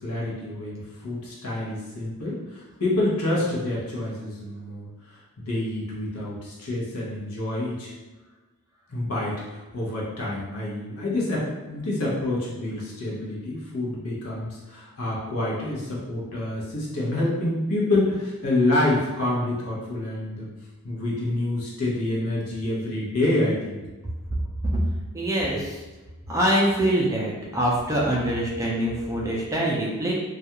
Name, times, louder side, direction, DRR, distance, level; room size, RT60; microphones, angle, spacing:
voice 1, 0.0-7.9 8.9-20.5 20.8-23.8, left 1 dB, 85° left, -5 dB, 0.8 m, -27 dB
voice 2, 25.1-25.8 26.3-30.1, right 1 dB, 15° right, -4 dB, 0.4 m, -24 dB
2.3 x 2.3 x 2.8 m, 1.2 s
head